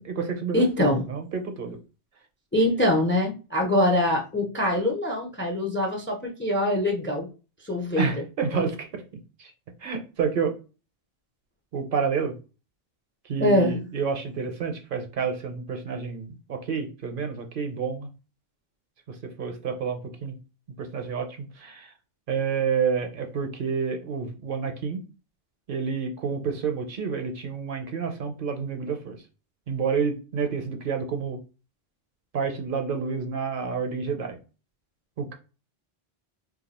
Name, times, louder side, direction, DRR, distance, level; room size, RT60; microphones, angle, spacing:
voice 1, 0.0-1.8 8.0-8.9 9.4-9.5 9.8-10.5 11.7-12.4 13.2-18.1 19.1-20.3 20.8-21.9 22.3-25.0 25.7-29.2 29.7-31.4 32.3-34.4 35.2-35.3, right 5 dB, 60° right, 5 dB, 0.7 m, -29 dB
voice 2, 0.5-1.1 2.5-7.3 7.6-8.1 8.5-8.7 13.4-13.8, left 1 dB, 15° left, 1 dB, 0.4 m, -23 dB
2.6 x 2.3 x 4.0 m, 0.33 s
omnidirectional pair, 1.1 m